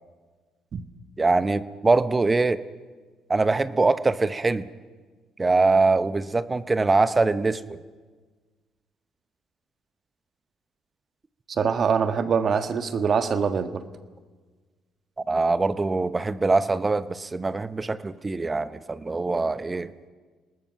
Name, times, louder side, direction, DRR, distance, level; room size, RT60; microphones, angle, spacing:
voice 1, 1.2-2.6 3.3-4.7 5.4-7.8 15.3-19.9, right 3 dB, 25° right, 13 dB, 1.0 m, -23 dB
voice 2, 11.5-13.8, right 6 dB, 50° right, 9 dB, 1.6 m, -24 dB
27.5 x 19.5 x 6.0 m, 1.4 s
hypercardioid pair, 55°, 0 cm